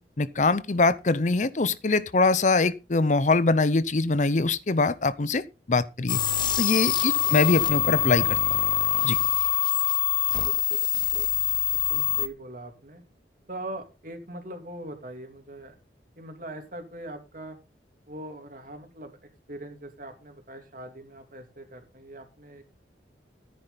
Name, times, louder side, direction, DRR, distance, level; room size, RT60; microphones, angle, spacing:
voice 1, 0.2-6.2 6.6-8.4 9.0-9.2, left 3 dB, 40° left, 0.6 m, -23 dB
sound 1, 6.1-12.3, left 10 dB, 25° left, 1.0 m, -24 dB
voice 2, 7.0-7.3 10.4-11.3 11.7-13.0 13.5-15.7 16.2-17.6 18.1-19.2 19.5-22.6, right 1 dB, 50° right, 2.9 m, -41 dB
13.5 x 9.8 x 4.0 m
head